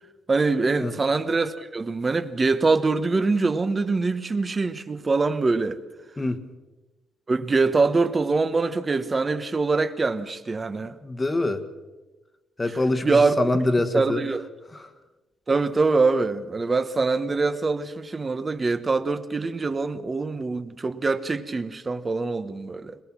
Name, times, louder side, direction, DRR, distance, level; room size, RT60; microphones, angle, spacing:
voice 1, 0.3-5.8 7.3-10.9 13.0-13.3 13.9-14.4 15.5-23.0, right 3 dB, 30° right, 1.1 m, -24 dB
voice 2, 11.0-11.6 12.6-14.2 14.7-14.9, left 2 dB, 20° left, 1.5 m, -25 dB
22.0 x 19.5 x 6.2 m
cardioid pair, 90°, 0 cm